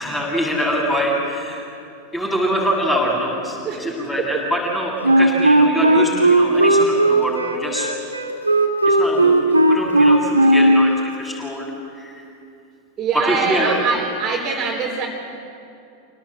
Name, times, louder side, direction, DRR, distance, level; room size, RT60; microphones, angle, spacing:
voice 1, 0.0-1.7 2.1-7.9 8.9-11.7 12.0-12.2 13.1-13.8, equal, 10° left, -2 dB, 7.1 m, -24 dB
voice 2, 3.6-4.4 13.0-15.1, right 5 dB, 25° right, -4 dB, 3.7 m, -23 dB
Wind instrument woodwind instrument, 5.0-10.9, right 1 dB, 85° right, 2.1 m, -15 dB
27.5 x 18.0 x 8.8 m, 2.6 s
figure-of-eight pair, 90°, 0 cm